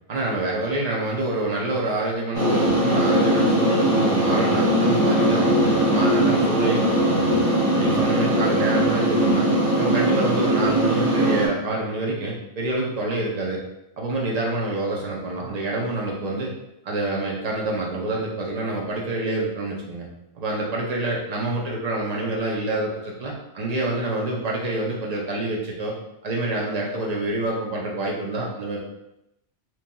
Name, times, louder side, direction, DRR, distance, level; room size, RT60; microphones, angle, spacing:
voice 1, 0.1-7.5 7.7-9.5 9.8-13.6 14.0-16.5 16.8-20.1 20.4-26.0 26.2-28.9, right 2 dB, 50° right, -3 dB, 0.5 m, -27 dB
sound 1, 2.3-11.5, right 1 dB, 75° right, 1.5 m, -20 dB
3.0 x 2.6 x 2.2 m, 0.86 s
omnidirectional pair, 1.2 m